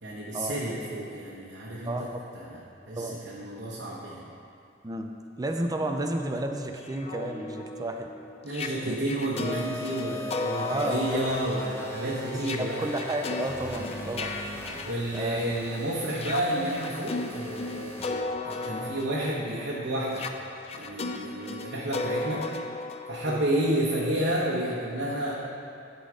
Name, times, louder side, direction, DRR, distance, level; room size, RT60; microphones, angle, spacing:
voice 1, 0.0-2.6 2.9-4.3 8.4-12.9 14.8-18.0 18.4-20.3 20.7-22.5 23.1-25.3, right 1 dB, 80° right, -7 dB, 1.1 m, -30 dB
voice 2, 1.9-2.3 3.0-3.2 4.8-5.1 5.4-8.1 8.9-9.0 10.7-11.3 12.3-14.3 15.1-15.4 18.7-18.9 23.3-23.4, right 1 dB, 20° right, 4 dB, 0.5 m, -32 dB
sound 1, 6.8-15.7 16.1-23.9, left 3 dB, 35° left, 0.4 m, -36 dB
sound 2, 9.4-18.2, left 2 dB, 15° left, 0.9 m, -40 dB
11.0 x 4.2 x 5.0 m, 2.5 s
head